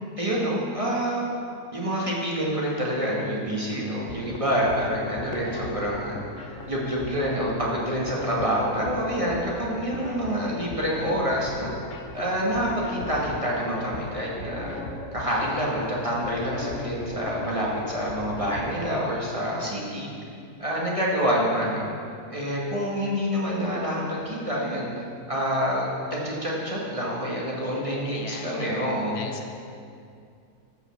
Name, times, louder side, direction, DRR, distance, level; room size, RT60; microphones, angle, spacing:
voice 1, 0.2-1.2 1.7-11.7 12.1-14.8 15.1-20.1 20.6-21.8 22.3-24.9 25.3-29.1, equal, 20° right, -5 dB, 1.9 m, -27 dB
sound 1, 3.9-18.7, left 3 dB, 50° left, 1.1 m, -38 dB
voice 2, 28.0-29.5, left 4 dB, 75° left, 4 dB, 1.3 m, -39 dB
13.5 x 5.7 x 7.1 m, 2.4 s
omnidirectional pair, 1.7 m